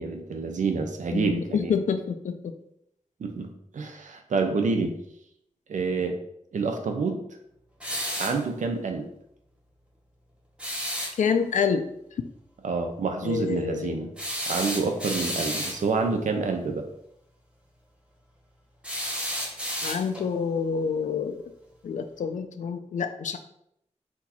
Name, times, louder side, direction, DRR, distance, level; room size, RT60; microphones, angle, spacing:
voice 1, 0.0-1.8 3.2-4.9 5.7-6.2 6.5-7.2 8.2-9.1 12.6-14.1 14.5-16.9, right 4 dB, 85° right, 5 dB, 0.7 m, -28 dB
voice 2, 1.1-2.5 4.8-4.9 11.2-11.9 13.2-14.1 19.8-21.4 21.8-23.4, left 6 dB, 80° left, 8 dB, 0.4 m, -27 dB
sound 1, 7.8-8.4 10.6-11.2 14.2-15.8 18.8-20.3, equal, 10° right, 1.1 m, -31 dB
4.3 x 2.7 x 4.2 m, 0.76 s
wide cardioid pair, 120°, 13 cm